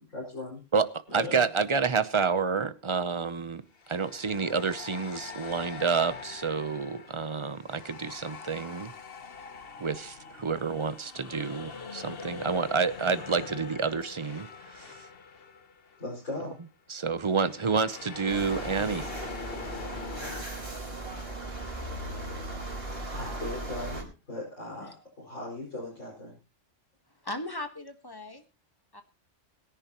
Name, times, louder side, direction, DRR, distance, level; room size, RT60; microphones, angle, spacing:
voice 1, 0.1-0.6 1.1-1.4 16.0-16.5 23.1-26.4, left 2 dB, 85° left, -6 dB, 6.1 m, -38 dB
voice 2, 0.7-3.6 3.9-8.9 9.8-14.5 14.7-14.9 16.9-19.2, right 5 dB, 30° right, 14 dB, 0.6 m, -29 dB
sound 1, 1.1-1.3 3.7-16.1 16.4-16.6 17.3-20.4, left 5 dB, 50° left, 1.2 m, -43 dB
sound 2, 18.3-24.0, right 2 dB, 50° right, 4.6 m, -37 dB
voice 3, 27.2-28.4 28.9-29.0, left 1 dB, 20° left, 7 dB, 1.4 m, -38 dB
22.5 x 10.5 x 3.0 m, 0.31 s
omnidirectional pair, 1.3 m